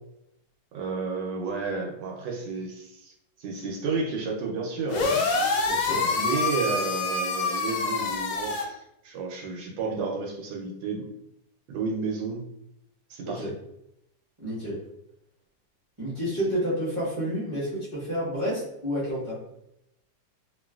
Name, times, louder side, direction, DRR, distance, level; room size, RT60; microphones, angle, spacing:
voice 1, 0.7-3.1 3.4-5.2 6.1-11.1 11.7-12.4 13.1-13.5, right 4 dB, 75° right, 0 dB, 1.2 m, -31 dB
sound 1, 4.9-8.6, left 3 dB, 85° left, 1.4 m, -26 dB
voice 2, 5.7-6.1 13.2-13.5 14.4-14.8 16.0-19.4, equal, 25° right, -10 dB, 0.6 m, -30 dB
3.0 x 2.5 x 2.3 m, 0.81 s
omnidirectional pair, 2.0 m